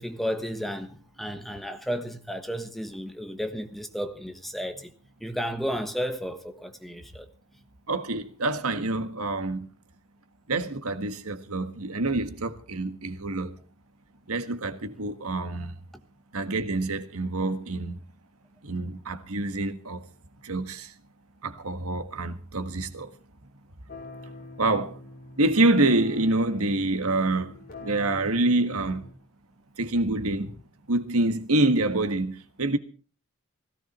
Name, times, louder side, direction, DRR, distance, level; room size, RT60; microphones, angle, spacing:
voice 1, 0.0-4.9 5.2-7.3, equal, ahead, 1.3 m, -33 dB
voice 2, 7.9-9.7 10.5-13.6 14.3-15.7 16.3-18.0 18.6-20.0 20.4-20.9 21.4-23.1 24.6-25.0 25.4-29.1 29.8-30.6 30.9-32.8, right 2 dB, 80° right, 1.6 m, -26 dB
sound 1, 23.9-29.1, left 3 dB, 45° left, 5.5 m, -44 dB
17.0 x 16.5 x 4.3 m
head